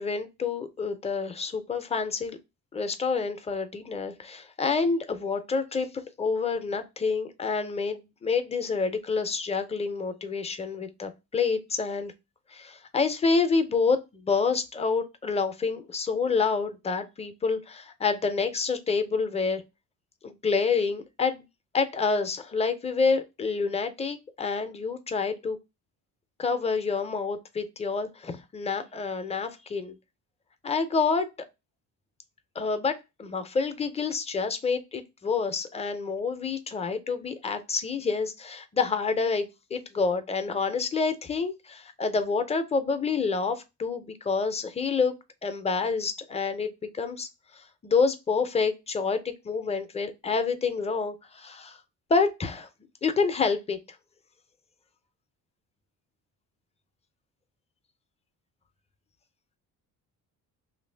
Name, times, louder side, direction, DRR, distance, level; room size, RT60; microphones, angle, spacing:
voice 1, 0.0-2.4 2.7-12.1 12.5-19.6 20.2-21.4 21.7-25.6 26.4-30.0 30.6-31.3 32.6-45.1 45.4-47.3 47.5-51.8 52.1-52.7 53.0-53.8, left 4 dB, 20° left, 0.4 m, -28 dB
2.9 x 2.5 x 3.2 m
cardioid pair, 145°, 35 cm